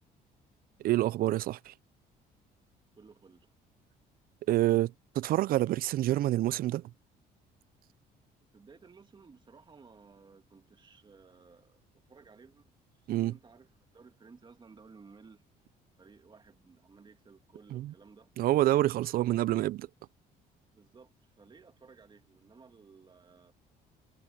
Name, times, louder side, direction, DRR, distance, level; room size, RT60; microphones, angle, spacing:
voice 1, 0.8-1.7 4.5-6.8 13.1-13.3 17.7-17.9 18.4-19.9, right 15 dB, 60° right, 0.4 m, -27 dB
voice 2, 3.0-3.5 8.5-12.7 13.0-13.7 13.9-15.4 16.0-18.3 19.1-19.2 20.7-23.5, right 5 dB, 25° right, 2.4 m, -56 dB
cardioid pair, 110°, 17 cm